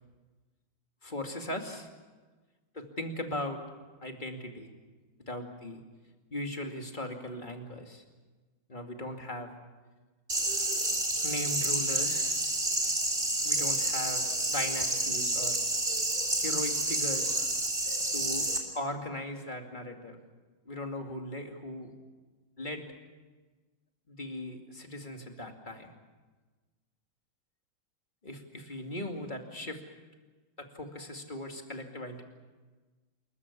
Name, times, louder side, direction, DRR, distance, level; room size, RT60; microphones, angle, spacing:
voice 1, 1.0-1.9 2.7-3.6 4.0-4.7 5.3-5.8 6.3-8.0 8.7-9.5 11.2-12.4 13.4-15.6 16.4-17.4 18.1-18.5 18.7-20.2 20.7-21.9 22.6-22.9 24.1-25.9 28.2-29.8 30.6-32.2, left 1 dB, 25° left, 4 dB, 2.4 m, -38 dB
sound 1, 10.3-18.6, right 2 dB, 25° right, 3.5 m, -29 dB
27.5 x 14.5 x 9.8 m, 1.3 s
omnidirectional pair, 2.2 m